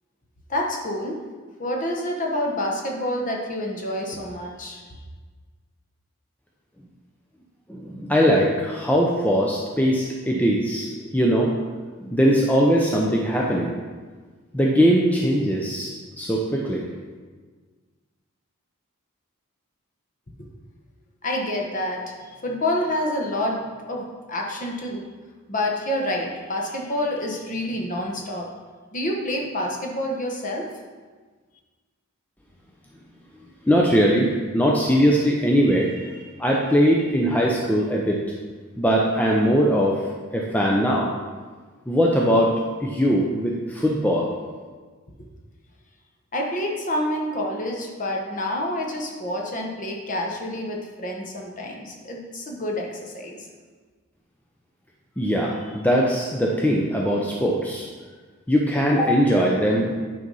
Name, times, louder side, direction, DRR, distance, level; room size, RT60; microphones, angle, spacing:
voice 1, 0.5-1.2 1.6-4.8 21.2-23.6 23.9-25.0 25.5-28.5 28.9-30.7 46.3-53.5, left 1 dB, 35° left, 0 dB, 1.1 m, -28 dB
voice 2, 7.7-10.9 11.1-11.5 12.0-13.7 14.5-16.8 33.7-34.3 34.5-36.0 36.4-38.2 38.8-40.0 40.3-41.1 41.9-42.5 42.8-44.3 55.2-57.9 58.5-60.0, equal, 5° left, -2 dB, 0.6 m, -20 dB
9.3 x 4.0 x 5.4 m, 1.4 s
head